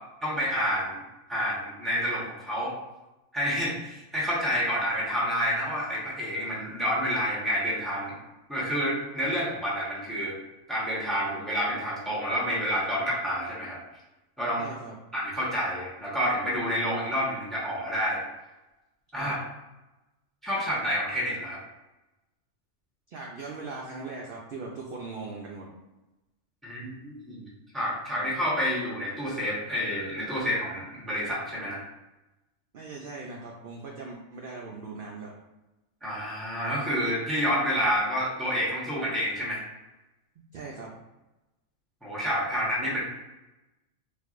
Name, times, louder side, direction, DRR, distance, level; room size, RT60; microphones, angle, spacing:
voice 1, 0.2-1.0 1.3-2.7 3.3-8.1 8.5-10.4 10.7-13.8 14.4-14.7 15.1-18.2 19.1-19.4 20.4-21.6 26.6-31.8 36.0-39.6 42.0-43.0, equal, ahead, -6 dB, 0.9 m, -29 dB
voice 2, 14.6-14.9 19.2-19.3 23.1-25.7 32.7-35.3 40.5-40.9, right 3 dB, 65° right, -2 dB, 0.5 m, -39 dB
4.4 x 2.6 x 2.5 m, 1.0 s
omnidirectional pair, 1.4 m